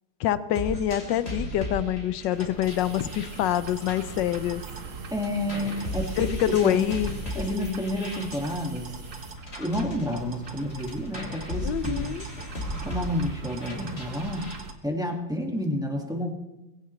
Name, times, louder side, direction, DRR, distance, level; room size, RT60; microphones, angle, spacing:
voice 1, 0.2-4.6 6.2-7.2 7.6-7.8 11.6-12.2, left 11 dB, 70° left, 14 dB, 1.3 m, -26 dB
sound 1, 0.5-4.9 5.2-14.6, equal, 30° left, 3.3 m, -37 dB
sound 2, 2.3-14.7, right 3 dB, 45° right, 1.4 m, -42 dB
sound 3, 2.6-9.4, right 4 dB, 80° right, 2.2 m, -43 dB
voice 2, 5.1-6.9 7.3-9.0 9.6-12.2 12.8-14.5 14.8-16.3, left 1 dB, ahead, 0 dB, 1.8 m, -30 dB
21.5 x 16.5 x 3.2 m, 1.0 s
omnidirectional pair, 2.2 m